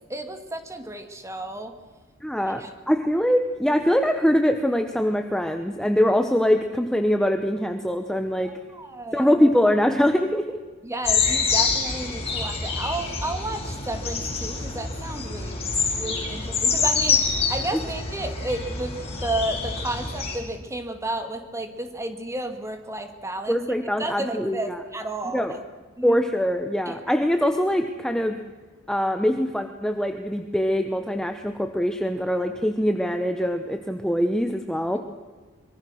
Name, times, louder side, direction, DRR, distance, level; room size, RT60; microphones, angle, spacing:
voice 1, 0.0-1.7 2.6-2.7 8.4-9.3 10.8-15.6 15.9-23.6 24.0-25.6 26.0-26.2 26.9-27.0, right 1 dB, 15° right, 6 dB, 2.2 m, -32 dB
voice 2, 2.2-8.5 9.1-10.6 23.5-24.8 25.3-25.5 26.0-28.4 28.9-35.0, equal, 5° left, 6 dB, 1.0 m, -23 dB
sound 1, 11.0-20.4, left 5 dB, 30° left, 5.3 m, -26 dB
25.0 x 23.5 x 6.4 m, 1.3 s
head